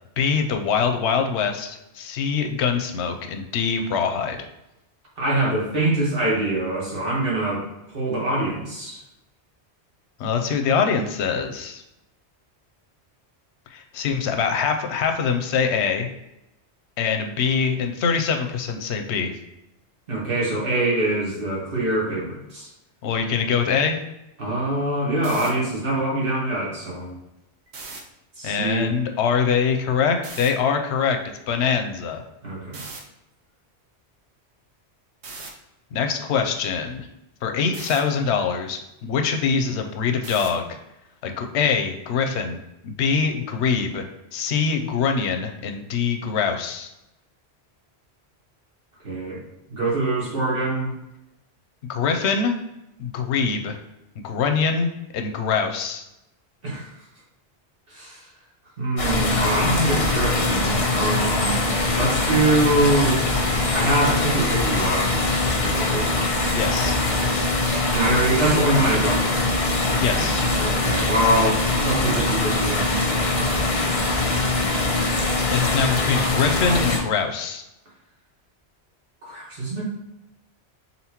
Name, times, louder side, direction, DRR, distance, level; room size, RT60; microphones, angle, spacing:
voice 1, 0.2-4.4 10.2-11.8 13.7-16.1 17.0-19.4 23.0-24.0 28.4-32.2 35.9-37.1 37.4-40.7 41.2-42.6 42.8-44.1 44.3-46.9 51.9-52.6 53.0-53.8 54.2-56.0 66.5-67.0 70.0-70.5 75.5-77.6, left 6 dB, 90° left, 5 dB, 0.9 m, -24 dB
voice 2, 5.2-7.6 7.9-9.0 20.1-22.7 24.4-27.1 28.4-28.9 32.4-32.8 49.0-49.4 49.7-50.9 56.6-56.8 57.9-58.2 58.8-61.6 62.0-63.2 63.7-65.1 65.5-66.1 67.9-69.6 70.1-73.0 79.2-79.8, right 2 dB, 60° right, -5 dB, 1.7 m, -24 dB
sound 1, 25.2-25.5 27.7-28.0 30.2-30.5 32.7-33.0 35.2-35.5 37.7-38.0 40.2-40.6, right 3 dB, 80° right, 1.0 m, -37 dB
sound 2, 59.0-77.0, left 2 dB, 70° left, 1.2 m, -22 dB
4.2 x 3.8 x 2.9 m, 0.90 s
omnidirectional pair, 1.1 m